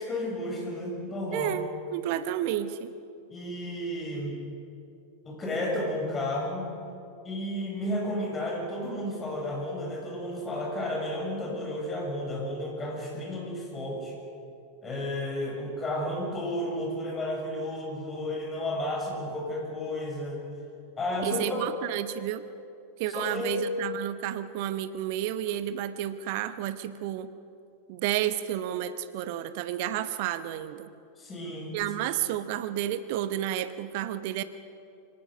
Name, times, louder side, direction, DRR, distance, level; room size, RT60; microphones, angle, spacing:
voice 1, 0.0-1.5 3.3-4.4 5.2-6.7 7.2-14.1 14.8-20.4 21.0-21.6 23.1-23.6 31.2-32.2, left 1 dB, 20° left, -1 dB, 6.6 m, -32 dB
voice 2, 1.3-2.9 21.2-22.4 23.0-27.3 27.9-30.9 31.7-34.4, right 12 dB, 50° right, 13 dB, 1.0 m, -31 dB
24.5 x 18.5 x 6.4 m, 2.6 s
figure-of-eight pair, 90°, 0 cm